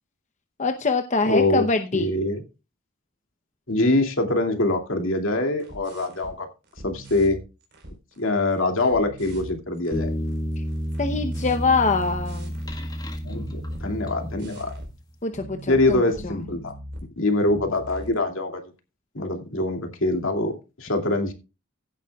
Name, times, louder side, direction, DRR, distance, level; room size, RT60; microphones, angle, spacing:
voice 1, 0.6-2.1 11.0-12.5 15.2-16.3, left 4 dB, 35° left, 6 dB, 0.8 m, -24 dB
voice 2, 1.3-1.6 1.9-2.4 3.7-6.5 6.8-7.4 8.2-10.1 13.2-14.7 15.7-16.7 17.2-18.6 19.1-20.5 20.8-21.3, left 2 dB, 70° left, 4 dB, 2.6 m, -24 dB
sound 1, 5.6-6.4 6.6-8.2 8.5-12.8 13.2-13.9 14.3-14.9 15.3-17.1 17.5-18.2, right 1 dB, 55° right, 4.2 m, -41 dB
sound 2, 9.9-14.8, equal, 20° left, 1.8 m, -30 dB
16.0 x 9.0 x 2.4 m, 0.29 s
head